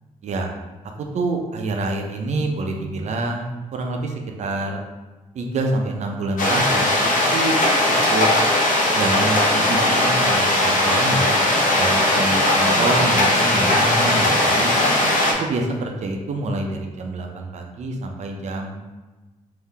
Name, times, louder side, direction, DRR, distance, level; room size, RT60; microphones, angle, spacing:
voice 1, 1.0-4.8 5.3-7.6 8.1-8.3 8.9-11.3 11.7-14.7 15.4-18.9, right 2 dB, 55° right, 2 dB, 0.6 m, -26 dB
sound 1, 6.4-15.3, left 1 dB, 75° left, 0.8 m, -18 dB
3.4 x 2.7 x 3.7 m, 1.2 s
wide cardioid pair, 135°, 14 cm